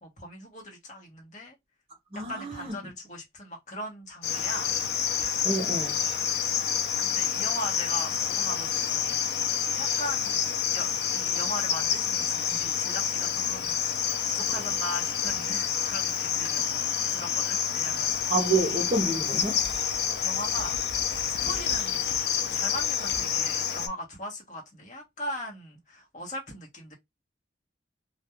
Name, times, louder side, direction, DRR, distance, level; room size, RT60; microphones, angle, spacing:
voice 1, 0.0-1.6 2.1-4.7 7.0-9.5 9.7-10.4 10.7-16.6 17.1-18.1 20.2-20.7 21.3-22.0 22.5-26.9, left 1 dB, 40° left, 0.9 m, -39 dB
voice 2, 2.1-2.7 5.4-6.0 18.3-19.6, right 3 dB, 30° right, 0.6 m, -28 dB
Cricket, 4.2-23.9, left 8 dB, 60° left, 0.4 m, -28 dB
2.3 x 2.2 x 2.8 m
head